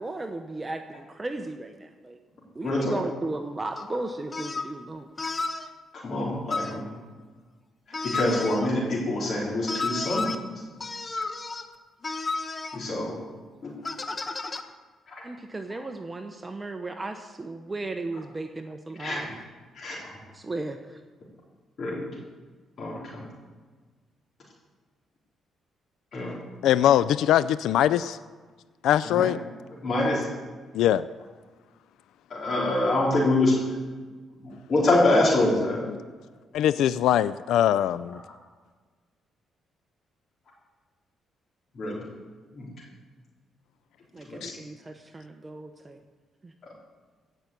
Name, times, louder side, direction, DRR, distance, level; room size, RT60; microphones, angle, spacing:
voice 1, 0.0-2.2 2.5-5.3 15.2-19.3 20.3-21.0 44.1-46.0 46.4-46.5, right 2 dB, 20° right, 6 dB, 0.9 m, -35 dB
voice 2, 2.6-3.0 6.0-6.9 7.9-10.3 12.7-13.2 13.6-13.9 15.1-15.2 19.0-19.2 19.7-20.2 21.8-22.1 22.8-23.3 26.1-26.4 29.1-29.3 29.8-30.3 32.3-33.6 34.4-35.8 41.8-42.0 42.5-42.7 44.3-44.6, left 2 dB, 50° left, -5 dB, 3.5 m, -25 dB
sound 1, 3.8-3.9 4.3-4.7 5.2-5.7 6.5-6.8 7.9-8.7 9.7-10.4 10.8-11.7 12.0-12.8 13.8-14.6, left 3 dB, 30° left, 1.0 m, -32 dB
voice 3, 26.6-28.2 28.8-29.4 30.7-31.1 36.5-38.2 44.4-44.5, left 11 dB, 85° left, 15 dB, 0.3 m, -22 dB
16.0 x 5.9 x 8.1 m, 1.4 s
cardioid pair, 90°, 0 cm